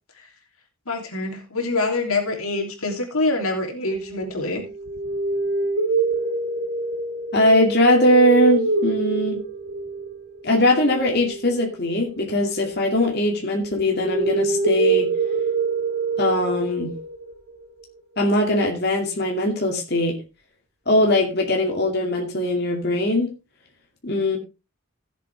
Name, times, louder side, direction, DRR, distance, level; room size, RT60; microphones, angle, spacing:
voice 1, 0.9-4.6, left 2 dB, 85° left, 3 dB, 3.0 m, -25 dB
sound 1, 3.9-13.2 13.5-17.3, right 4 dB, 55° right, 1.2 m, -26 dB
voice 2, 7.3-9.4 10.4-15.1 16.2-16.9 18.2-20.2 20.9-23.3 24.0-24.4, left 1 dB, 50° left, 1 dB, 2.4 m, -20 dB
16.0 x 7.6 x 3.4 m, 0.28 s
head